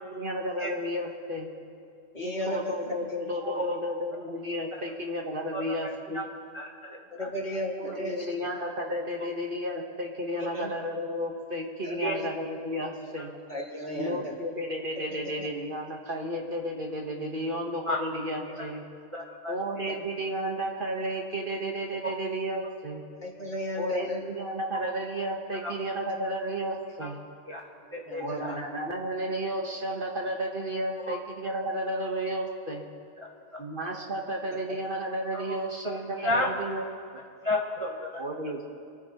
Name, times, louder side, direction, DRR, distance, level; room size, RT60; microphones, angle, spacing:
voice 1, 0.0-1.5 2.2-6.2 7.9-13.3 13.9-18.8 19.5-23.0 23.8-27.2 28.2-32.8 33.6-36.8 37.1-37.2 38.2-38.6, equal, 45° right, 0 dB, 1.4 m, -33 dB
voice 2, 2.1-2.7 7.2-8.2 10.5-10.7 11.8-12.3 13.5-14.2 15.4-15.5 23.2-24.2 28.1-28.6, left 1 dB, 35° left, -2 dB, 2.1 m, -33 dB
voice 3, 3.4-3.8 5.5-6.2 6.5-7.3 10.4-10.6 12.0-12.2 17.9-18.0 19.1-19.5 22.0-22.1 25.6-25.7 27.0-27.1 27.5-27.6 27.9-28.6 31.0-31.2 33.5-33.6 35.3-35.4 35.8-36.5 37.4-38.2, left 1 dB, 25° right, -2 dB, 1.1 m, -32 dB
26.0 x 14.0 x 2.9 m, 2.5 s
omnidirectional pair, 1.3 m